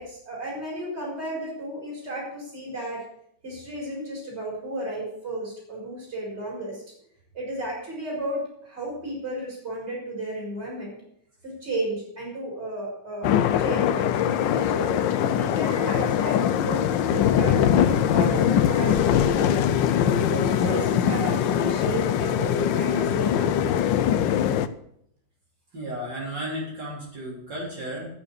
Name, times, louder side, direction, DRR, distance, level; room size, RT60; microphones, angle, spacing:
voice 1, 0.0-3.0 3.4-6.8 7.3-11.0 11.4-13.3 13.6-19.6 20.1-23.7, right 1 dB, 35° right, -3 dB, 4.8 m, -33 dB
sound 1, 13.2-24.7, left 9 dB, 80° left, 1.3 m, -22 dB
voice 2, 25.7-28.1, equal, 65° right, -5 dB, 4.4 m, -33 dB
9.6 x 9.1 x 6.6 m, 0.70 s
omnidirectional pair, 2.1 m